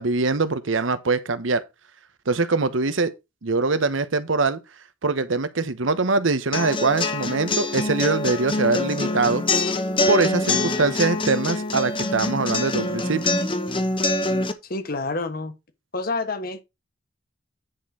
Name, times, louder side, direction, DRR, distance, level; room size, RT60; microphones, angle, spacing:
voice 1, 0.0-1.6 2.3-3.1 3.4-4.6 5.0-9.4 10.1-13.2, right 3 dB, 80° right, 1.0 m, -23 dB
sound 1, 6.5-14.5, left 2 dB, 25° left, 1.0 m, -25 dB
voice 2, 14.6-15.5 15.9-16.6, left 3 dB, 50° left, 1.4 m, -28 dB
10.0 x 4.4 x 4.8 m
head